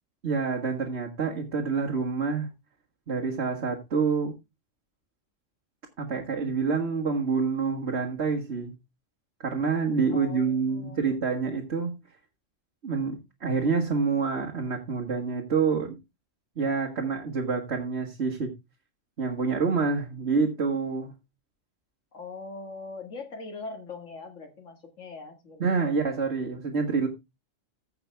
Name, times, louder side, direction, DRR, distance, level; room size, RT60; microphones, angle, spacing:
voice 1, 0.2-2.5 3.1-4.3 6.0-8.7 9.4-11.9 12.8-15.9 16.6-18.5 19.2-21.1 25.6-27.1, right 5 dB, 60° right, 2.0 m, -27 dB
voice 2, 10.1-11.2 22.1-26.0, left 3 dB, 85° left, 2.3 m, -42 dB
15.0 x 5.9 x 3.4 m
omnidirectional pair, 1.3 m